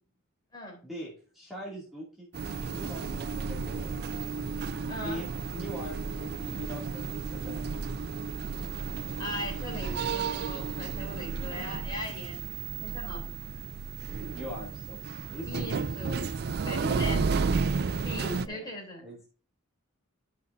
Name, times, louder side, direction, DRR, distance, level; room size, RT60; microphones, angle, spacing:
voice 1, 0.8-2.3 2.6-4.0 5.0-5.3 5.5-7.7 14.3-15.0 15.3-15.7 16.6-17.2 18.4-18.6 19.0-19.3, equal, ahead, -7 dB, 2.4 m, -42 dB
sound 1, 2.3-18.5, right 5 dB, 50° right, 0.4 m, -33 dB
voice 2, 4.9-5.2 9.2-12.4 12.7-13.4 15.4-16.3 16.6-17.4 18.0-19.0, left 1 dB, 20° left, -1 dB, 3.2 m, -39 dB
13.0 x 5.9 x 2.6 m, 0.37 s
head